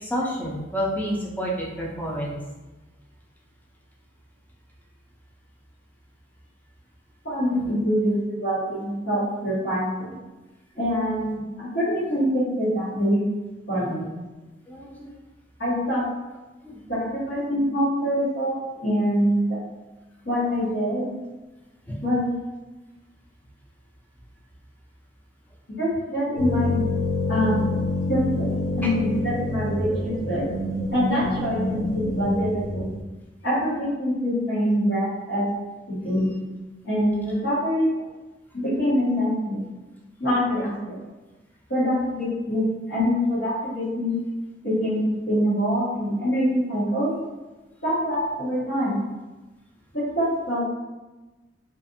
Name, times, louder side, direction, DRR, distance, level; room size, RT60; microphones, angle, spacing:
voice 1, 0.0-2.4 7.5-7.6 14.7-15.1 16.6-16.8 21.9-22.0, equal, 10° left, -3 dB, 0.5 m, -29 dB
voice 2, 7.2-10.2 10.8-13.2 13.7-14.1 15.6-16.0 16.9-19.6 20.2-21.1 22.0-22.3 25.8-26.8 27.3-27.6 28.1-28.5 28.8-30.4 30.9-32.9 33.4-35.4 35.9-36.3 36.8-37.9 38.5-39.6 40.2-41.0 41.7-44.2 44.6-47.1 47.8-49.0 49.9-50.7, equal, 65° left, -14 dB, 1.3 m, -24 dB
sound 1, 26.4-33.0, left 2 dB, 45° left, 0.7 m, -27 dB
2.5 x 2.4 x 2.6 m, 1.1 s
head